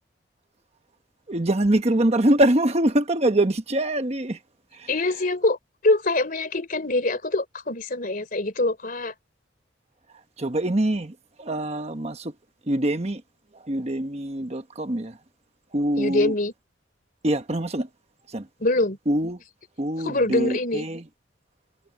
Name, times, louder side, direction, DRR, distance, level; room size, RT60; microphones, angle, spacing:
voice 1, 1.3-4.4 4.7-4.9 10.4-12.3 12.7-13.2 13.5-15.2 15.7-16.3 17.2-17.9 18.3-18.5 19.1-19.4 19.8-21.0, right 1 dB, 35° right, 1.2 m, -24 dB
voice 2, 4.9-5.6 5.8-9.1 16.0-16.5 18.6-19.0 20.0-20.9, left 2 dB, 45° left, 3.3 m, -24 dB
head